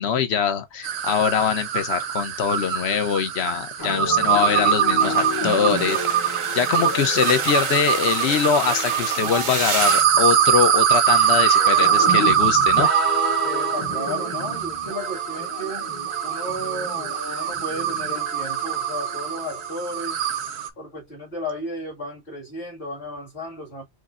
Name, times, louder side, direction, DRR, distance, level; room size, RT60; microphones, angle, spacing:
voice 1, 0.0-6.3 6.5-12.9, left 7 dB, 75° left, 0.9 m, -23 dB
sound 1, 0.8-9.4 9.8-20.7, right 9 dB, 80° right, 0.8 m, -23 dB
sound 2, 3.8-19.8, left 2 dB, 25° left, 0.6 m, -33 dB
sound 3, 5.0-10.0, right 5 dB, 45° right, 0.4 m, -29 dB
voice 2, 11.8-12.1 13.4-15.9 16.2-20.2 20.8-23.8, left 1 dB, 55° left, 2.0 m, -34 dB
6.2 x 2.1 x 2.4 m
omnidirectional pair, 1.1 m